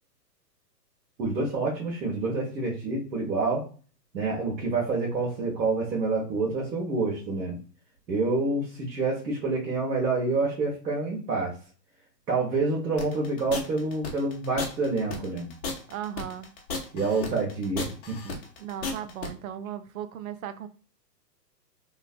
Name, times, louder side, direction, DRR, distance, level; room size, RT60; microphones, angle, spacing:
voice 1, 1.2-3.6 4.1-7.6 8.1-11.5 12.3-15.5 16.9-18.3, right 3 dB, 80° right, 1.3 m, -27 dB
sound 1, 13.0-19.3, left 4 dB, 40° left, 0.7 m, -34 dB
voice 2, 15.9-16.5 18.6-20.7, right 10 dB, 60° right, 0.5 m, -36 dB
3.1 x 2.2 x 2.4 m
hypercardioid pair, 135°, 50 cm